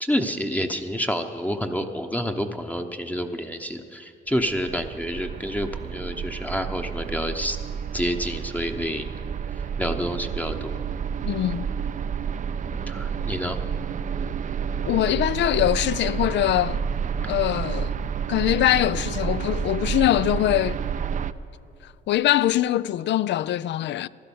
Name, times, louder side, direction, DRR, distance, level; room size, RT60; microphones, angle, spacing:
voice 1, 0.0-7.6 7.9-9.1 9.8-10.8 12.9-13.6, equal, 5° left, 0.8 m, -28 dB
sound 1, 4.3-21.3, right 7 dB, 40° right, 0.5 m, -30 dB
voice 2, 11.2-11.7 14.8-16.8 17.3-20.8 21.8-24.1, left 13 dB, 65° left, 0.4 m, -23 dB
15.5 x 11.5 x 7.1 m
cardioid pair, 90°, 20 cm